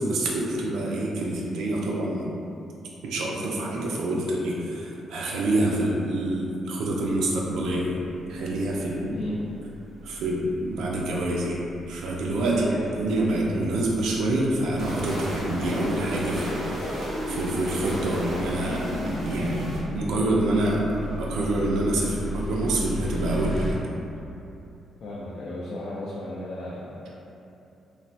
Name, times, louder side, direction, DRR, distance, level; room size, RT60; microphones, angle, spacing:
voice 1, 0.0-2.3 3.0-8.0 8.3-9.2 10.0-12.7 12.9-16.9 17.3-23.8, right 1 dB, 85° right, -3 dB, 0.3 m, -27 dB
sound 1, 7.0-23.7, equal, 30° right, 0.8 m, -38 dB
voice 2, 9.1-9.5 12.5-13.0 25.0-27.1, left 1 dB, 55° left, -7 dB, 0.4 m, -34 dB
sound 2, 14.8-19.8, equal, 60° right, 0.8 m, -31 dB
3.2 x 2.1 x 2.6 m, 2.7 s
cardioid pair, 170°, 0 cm